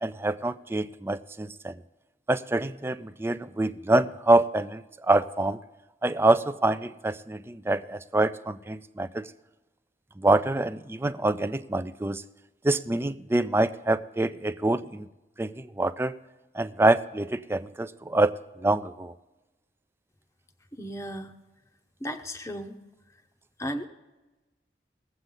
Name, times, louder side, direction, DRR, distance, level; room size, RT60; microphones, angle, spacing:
voice 1, 0.0-1.8 2.3-5.6 6.0-9.3 10.2-12.2 12.6-15.1 15.4-16.2 16.5-18.3 18.6-19.1, right 2 dB, 15° right, 13 dB, 0.4 m, -26 dB
voice 2, 20.7-21.3 22.0-22.7 23.6-23.9, equal, 15° left, 5 dB, 0.8 m, -35 dB
20.5 x 7.9 x 3.8 m, 1.1 s
head